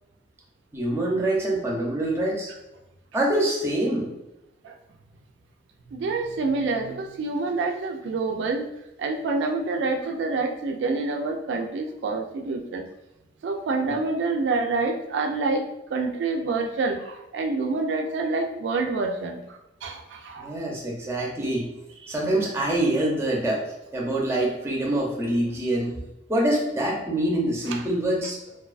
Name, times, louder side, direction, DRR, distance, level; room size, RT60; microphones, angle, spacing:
voice 1, 0.7-2.5 3.1-4.1 13.8-14.0 20.4-21.7 22.1-23.6 23.9-26.0 26.3-28.4, right 1 dB, 15° right, -3 dB, 0.5 m, -25 dB
voice 2, 5.9-8.7 9.0-12.9 13.4-15.6 15.9-20.6 22.0-22.1 27.7-27.8, right 3 dB, 85° right, 3 dB, 0.3 m, -27 dB
2.3 x 2.2 x 2.4 m, 0.91 s
head